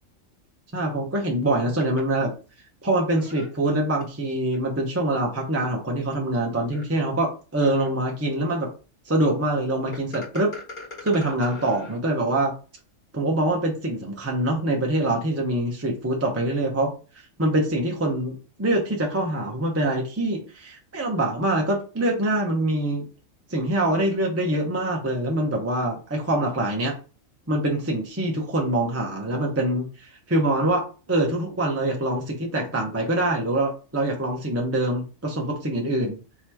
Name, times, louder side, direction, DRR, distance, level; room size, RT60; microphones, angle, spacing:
voice 1, 0.7-2.3 2.8-8.7 9.1-10.5 11.0-12.5 13.1-23.1 23.5-27.0 27.5-30.8 31.1-36.2, right 1 dB, 15° right, 0 dB, 0.8 m, -24 dB
sound 1, 1.8-2.0 3.2-4.0 4.5-4.6 5.4-5.5 6.1-6.2 6.7-6.8 7.6-8.1 9.9-12.0, left 3 dB, 40° left, 1.9 m, -40 dB
3.6 x 3.0 x 4.6 m, 0.35 s
omnidirectional pair, 1.3 m